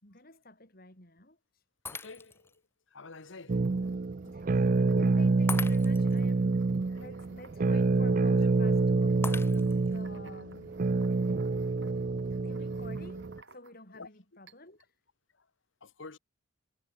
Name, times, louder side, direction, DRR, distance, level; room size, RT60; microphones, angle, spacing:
voice 1, 0.0-1.4 3.8-3.9 4.2-6.6 7.0-10.8 12.4-14.8, left 2 dB, 45° left, 5.1 m, -50 dB
voice 2, 1.9-2.5 2.9-3.8 6.9-7.0 13.9-14.1 15.8-16.2, left 3 dB, 65° left, 1.3 m, -48 dB
Shatter, 1.9-2.6 3.1-3.2 5.5-6.2 9.2-10.0, left 4 dB, 10° left, 0.5 m, -39 dB
sound 1, 3.0-14.0 14.5-14.9, right 4 dB, 55° right, 6.7 m, -62 dB
sound 2, 3.5-13.4, right 3 dB, 40° right, 0.4 m, -27 dB
head